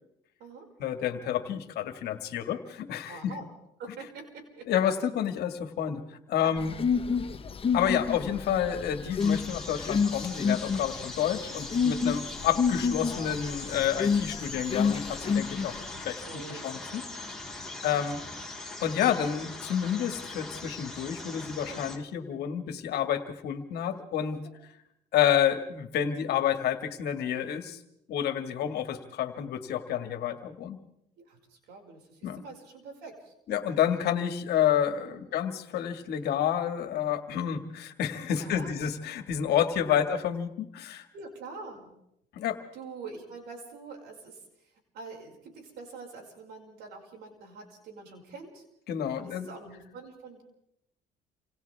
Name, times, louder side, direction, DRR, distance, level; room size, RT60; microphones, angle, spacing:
voice 1, 0.8-3.3 4.7-6.7 7.7-15.7 16.0-17.0 17.8-18.2 18.8-24.4 25.1-27.8 28.1-30.8 32.2-32.4 33.5-41.1 42.3-42.6 48.9-49.5, left 9 dB, 70° left, 8 dB, 2.1 m, -29 dB
voice 2, 3.1-3.5 3.8-4.7 6.4-6.9 16.3-17.2 17.5-18.1 21.7-21.9 31.2-33.7 35.0-35.3 38.3-38.7 39.9-40.1 41.1-41.9 42.7-44.4 44.9-48.6 49.1-50.4, right 4 dB, 80° right, 1 dB, 6.0 m, -45 dB
sound 1, 6.6-15.9, left 6 dB, 35° left, 1.2 m, -29 dB
sound 2, 9.2-22.0, left 2 dB, 5° left, 4.2 m, -41 dB
28.5 x 26.5 x 3.6 m, 0.77 s
cardioid pair, 110°, 17 cm